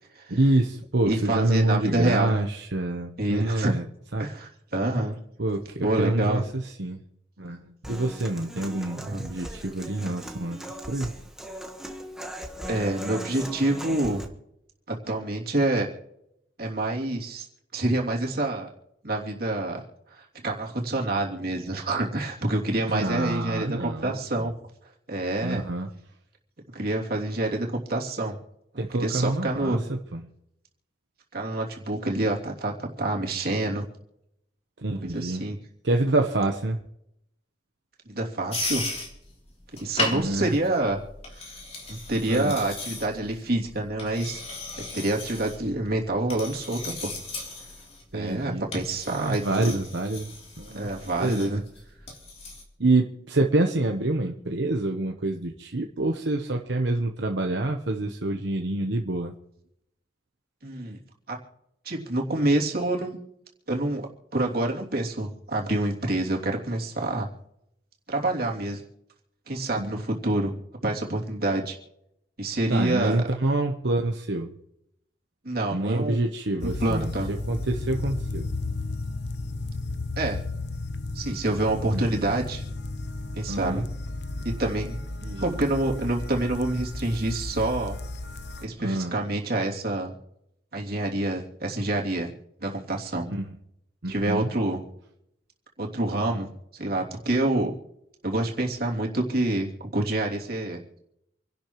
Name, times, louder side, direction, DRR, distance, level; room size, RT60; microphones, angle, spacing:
voice 1, 0.3-3.8 4.1-4.3 5.4-7.0 7.4-11.2 22.9-24.5 25.4-25.9 28.8-30.2 34.8-35.5 35.8-36.8 40.1-40.5 42.2-42.6 48.1-48.6 49.1-50.9 51.2-51.6 52.8-59.3 69.8-70.0 72.7-74.5 75.7-78.5 81.9-82.1 83.5-83.8 85.2-85.5 88.8-89.2 93.3-93.5 94.0-94.5, right 2 dB, 75° right, 3 dB, 1.0 m, -27 dB
voice 2, 1.0-2.4 3.2-3.7 4.2-5.2 5.8-6.4 9.1-9.2 12.7-14.2 14.9-15.9 16.6-17.5 17.7-18.7 19.0-19.8 20.1-24.5 25.1-25.6 26.7-28.4 28.7-29.8 31.3-33.9 35.1-35.6 38.1-38.8 39.8-41.0 41.9-44.4 44.8-47.1 48.1-49.8 50.7-51.6 60.6-61.0 61.3-61.4 61.8-63.2 63.7-64.1 64.3-67.3 68.1-68.8 69.5-70.5 70.8-71.8 72.4-73.2 75.4-76.2 76.6-77.3 80.2-80.4 81.1-82.6 83.3-83.8 84.4-85.0 85.4-88.0 88.6-90.1 90.7-92.3 92.6-93.3 94.1-94.8 95.8-97.7 98.2-101.0, right 2 dB, 55° right, -1 dB, 3.0 m, -27 dB
Human voice / Acoustic guitar, 7.8-14.3, right 1 dB, 5° right, 1.4 m, -39 dB
sound 1, 38.5-52.6, left 2 dB, 35° left, 3.3 m, -37 dB
sound 2, 76.6-88.7, left 2 dB, 65° left, 1.0 m, -34 dB
28.0 x 11.5 x 3.1 m, 0.80 s
head